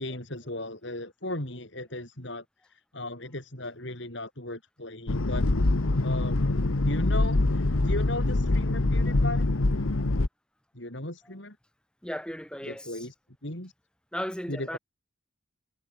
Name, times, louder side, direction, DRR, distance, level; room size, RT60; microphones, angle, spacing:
voice 1, 0.0-5.5 6.0-9.5 10.7-11.6 12.7-13.1 13.4-13.7 14.5-14.8, left 1 dB, 60° left, 5.9 m, -36 dB
sound 1, 5.1-10.3, left 2 dB, 85° left, 1.2 m, -24 dB
voice 2, 12.0-13.1 14.1-14.8, equal, 5° left, 8.0 m, -35 dB
head